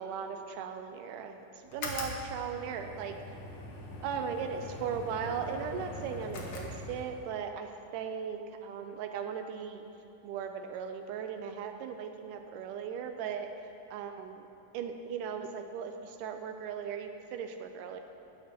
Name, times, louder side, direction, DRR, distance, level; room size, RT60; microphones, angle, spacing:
voice 1, 0.0-3.4 4.0-9.8 10.2-13.5 13.9-14.4 14.7-18.0, right 7 dB, 80° right, 6 dB, 2.0 m, -38 dB
sound 1, 1.7-7.3, left 2 dB, 75° left, 1.2 m, -42 dB
14.5 x 9.7 x 2.9 m, 2.9 s
omnidirectional pair, 4.0 m